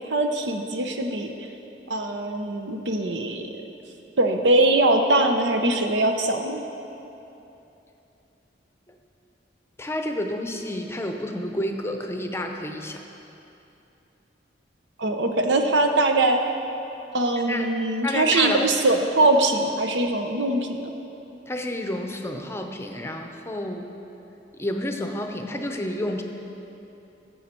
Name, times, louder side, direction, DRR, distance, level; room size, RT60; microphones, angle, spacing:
voice 1, 0.1-1.3 1.9-3.5 4.2-6.6 15.0-16.4 17.1-20.9, right 2 dB, 85° right, 5 dB, 0.8 m, -22 dB
voice 2, 9.8-13.0 17.5-17.7 18.0-18.7 21.5-23.9 24.6-26.2, left 1 dB, 15° left, 4 dB, 0.6 m, -30 dB
15.0 x 7.3 x 4.4 m, 2.9 s
head